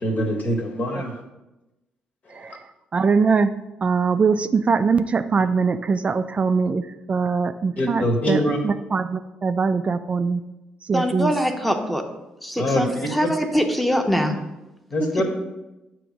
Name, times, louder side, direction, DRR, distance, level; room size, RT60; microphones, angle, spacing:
voice 1, 0.0-1.1 7.8-8.6 12.6-12.8 14.9-15.2, equal, 50° left, 2 dB, 1.5 m, -23 dB
voice 2, 2.9-3.5 3.8-6.8 7.1-10.4 10.9-11.3, right 5 dB, 40° right, 10 dB, 0.3 m, -22 dB
voice 3, 10.9-12.0 12.4-14.4 15.0-15.2, equal, ahead, 4 dB, 0.9 m, -23 dB
6.9 x 3.0 x 5.9 m, 0.99 s
supercardioid pair, 55°, 3 cm